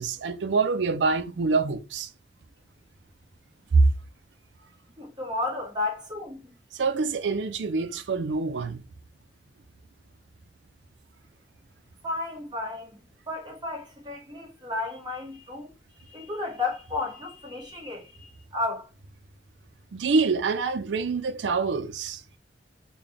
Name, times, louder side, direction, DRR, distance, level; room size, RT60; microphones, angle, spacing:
voice 1, 0.0-2.1 3.7-3.9 6.7-8.8 19.9-22.2, right 4 dB, 90° right, 0.5 m, -25 dB
voice 2, 5.0-6.5 12.0-13.0 13.3-15.7 16.0-18.9, left 2 dB, 25° right, 1.3 m, -33 dB
3.8 x 2.2 x 3.4 m
head